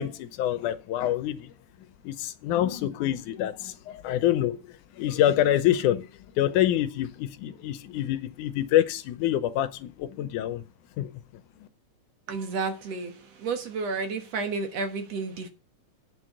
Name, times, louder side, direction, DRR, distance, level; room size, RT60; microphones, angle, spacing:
voice 1, 0.0-1.5 2.0-4.6 5.0-6.1 6.4-10.6 11.0-11.1, left 12 dB, 90° left, 2.4 m, -26 dB
voice 2, 12.3-13.1 13.4-15.5, right 4 dB, 60° right, 2.5 m, -31 dB
9.0 x 6.3 x 7.7 m
omnidirectional pair, 3.4 m